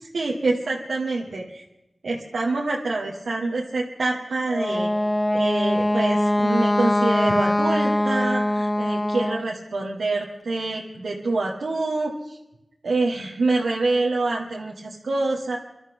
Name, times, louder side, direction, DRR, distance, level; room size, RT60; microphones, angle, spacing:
voice 1, 0.1-1.6 2.0-4.9 5.3-12.4 12.8-15.6, right 3 dB, 90° right, -2 dB, 1.5 m, -26 dB
Wind instrument woodwind instrument, 4.5-9.5, left 1 dB, 25° left, 0.6 m, -22 dB
25.0 x 12.5 x 3.6 m, 0.94 s
cardioid pair, 45°, 0 cm